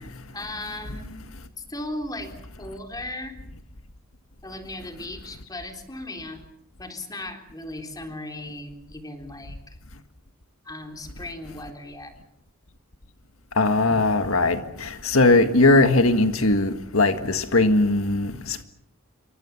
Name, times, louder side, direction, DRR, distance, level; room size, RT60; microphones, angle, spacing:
voice 1, 0.3-1.1 1.6-2.3 2.6-3.4 4.4-6.4 6.8-9.8 10.6-12.1, left 1 dB, 20° left, 3.8 m, -36 dB
voice 2, 13.6-18.6, left 2 dB, 80° left, 1.7 m, -20 dB
28.0 x 24.5 x 7.4 m
head